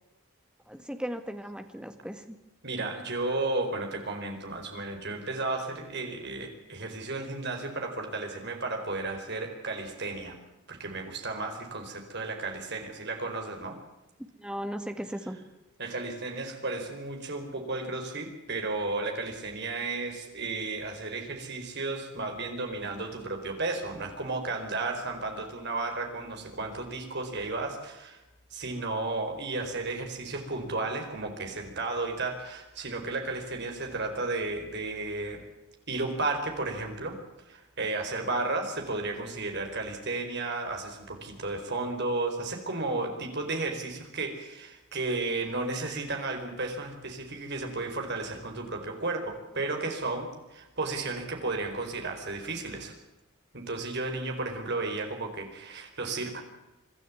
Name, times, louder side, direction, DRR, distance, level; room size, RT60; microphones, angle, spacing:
voice 1, 0.7-2.4 14.4-15.4, equal, 5° right, 7 dB, 1.7 m, -37 dB
voice 2, 2.6-10.4 10.7-13.8 15.8-28.2 28.5-35.4 35.9-37.2 37.5-52.9 53.5-56.4, right 3 dB, 50° right, 4 dB, 4.5 m, -33 dB
25.0 x 12.5 x 9.4 m, 1.0 s
head